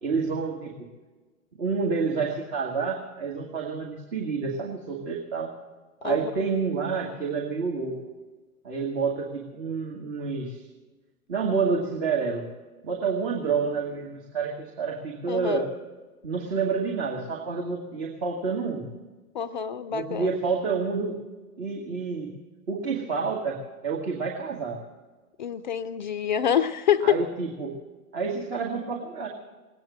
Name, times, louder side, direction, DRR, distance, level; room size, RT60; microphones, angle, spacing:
voice 1, 0.0-0.9 1.5-5.5 6.0-8.0 8.6-10.6 11.3-12.5 12.8-15.7 16.2-18.9 19.9-21.2 21.6-22.3 22.7-24.8 27.0-27.8 28.1-29.3, right 5 dB, 45° right, -1 dB, 2.2 m, -29 dB
voice 2, 15.3-15.7 19.3-20.3 25.4-27.2, left 9 dB, 35° left, 11 dB, 0.4 m, -26 dB
19.5 x 9.2 x 7.5 m, 1.3 s
figure-of-eight pair, 105°, 44 cm